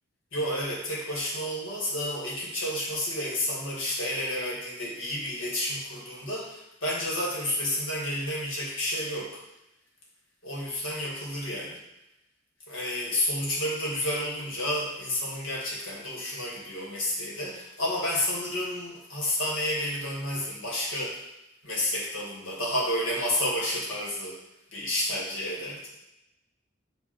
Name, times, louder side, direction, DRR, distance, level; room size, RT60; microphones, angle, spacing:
voice 1, 0.3-9.4 10.4-11.8 12.7-21.2 21.6-24.4 24.7-25.9, left 1 dB, 70° left, -4 dB, 2.3 m, -30 dB
8.1 x 3.5 x 6.0 m, 0.88 s
head